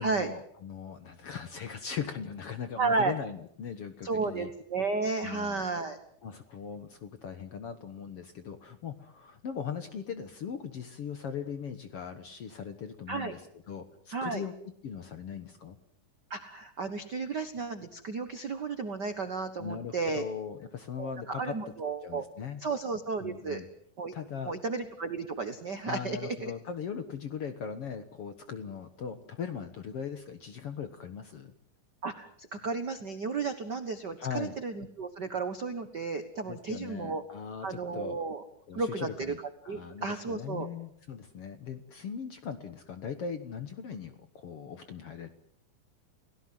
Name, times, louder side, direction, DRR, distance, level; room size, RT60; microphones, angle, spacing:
voice 1, 0.0-4.5 5.2-5.6 6.2-14.5 14.8-15.8 19.6-21.6 22.0-22.6 23.2-23.7 24.1-24.6 25.9-31.5 34.2-34.5 36.5-38.2 38.7-39.4 39.6-45.3, left 7 dB, 55° left, 9 dB, 1.7 m, -39 dB
voice 2, 2.8-3.1 4.0-6.0 13.1-13.3 14.1-14.4 16.3-20.2 21.0-22.3 22.6-23.6 24.0-24.1 24.4-26.5 32.0-37.2 37.6-38.4 38.7-39.3 39.7-40.7, right 4 dB, 60° right, 8 dB, 1.1 m, -33 dB
29.5 x 17.5 x 7.8 m, 0.67 s
omnidirectional pair, 4.1 m